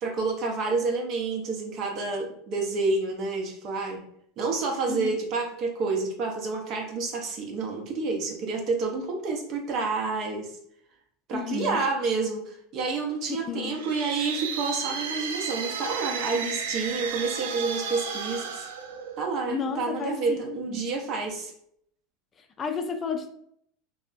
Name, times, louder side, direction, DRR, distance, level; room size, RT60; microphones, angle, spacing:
voice 1, 0.0-4.0 4.4-10.6 11.3-18.7 19.2-21.5, right 4 dB, 50° right, 2 dB, 0.7 m, -29 dB
voice 2, 4.9-5.2 11.3-11.8 13.2-13.8 19.5-20.9 22.4-23.3, left 5 dB, 30° left, 6 dB, 0.4 m, -32 dB
sound 1, 13.6-19.6, right 6 dB, 85° right, 0.4 m, -33 dB
3.4 x 2.1 x 2.4 m, 0.70 s
hypercardioid pair, 95°, 0 cm